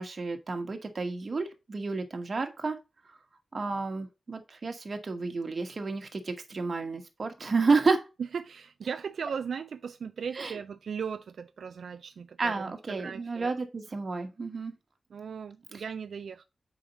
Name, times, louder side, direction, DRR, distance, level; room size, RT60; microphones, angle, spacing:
voice 1, 0.0-2.8 3.5-8.1 10.3-10.6 12.4-14.7, right 4 dB, 45° right, 1.1 m, -30 dB
voice 2, 8.3-13.5 15.1-16.4, right 6 dB, 85° right, 0.3 m, -38 dB
4.9 x 4.0 x 5.2 m
wide cardioid pair, 105°, 0 cm